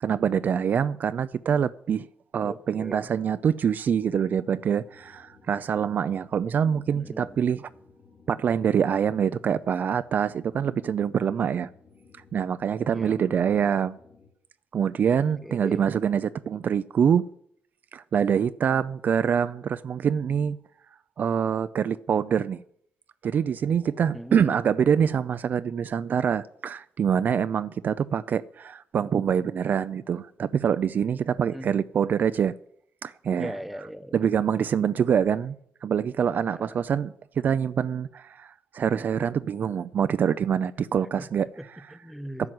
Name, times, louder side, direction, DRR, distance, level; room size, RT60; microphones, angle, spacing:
voice 1, 0.0-2.1 2.3-7.7 8.3-11.7 12.3-14.0 14.7-17.2 17.9-20.6 21.2-22.6 23.2-32.5 33.0-33.5 34.1-35.6 35.8-41.9 42.4-42.5, right 8 dB, 50° right, 0.4 m, -25 dB
voice 2, 2.4-3.1 6.9-7.4 12.9-13.5 15.4-15.9 24.1-24.6 31.5-31.8 33.4-34.2 36.5-36.7 41.2-41.6 41.9-42.5, equal, ahead, 0.9 m, -39 dB
sound 1, 4.6-14.3, left 4 dB, 50° left, 2.6 m, -56 dB
11.0 x 10.5 x 7.8 m
cardioid pair, 105°, 4 cm